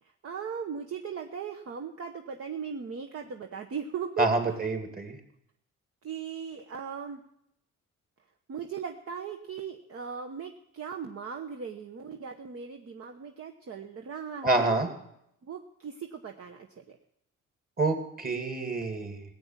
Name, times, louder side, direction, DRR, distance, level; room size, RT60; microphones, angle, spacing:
voice 1, 0.0-4.6 6.0-7.2 8.5-14.9 15.4-17.0, right 6 dB, 50° right, 4 dB, 1.1 m, -38 dB
voice 2, 4.2-5.2 14.4-14.9 17.8-19.2, right 2 dB, 30° right, 4 dB, 2.7 m, -27 dB
17.0 x 8.4 x 7.4 m, 0.77 s
cardioid pair, 90°, 30 cm